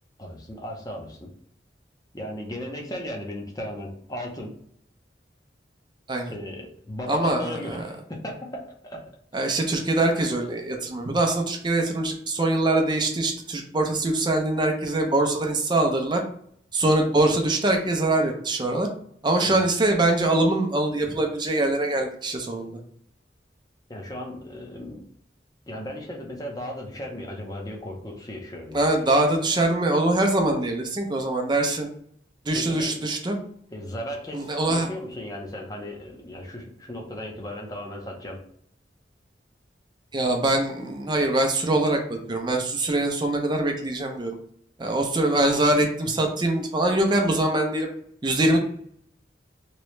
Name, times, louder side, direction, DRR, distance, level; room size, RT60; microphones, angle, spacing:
voice 1, 0.2-1.3 2.1-4.5 6.3-9.2 19.4-19.6 23.9-25.0 25.7-29.0 32.5-32.9 33.7-38.4, left 1 dB, 20° left, -1 dB, 0.7 m, -36 dB
voice 2, 7.1-7.8 9.3-16.2 16.7-18.9 19.2-22.8 28.7-31.9 32.5-33.4 34.3-34.9 40.1-44.4 44.8-47.9 48.2-48.6, right 2 dB, 25° right, 3 dB, 0.6 m, -23 dB
3.1 x 2.9 x 3.2 m, 0.65 s
head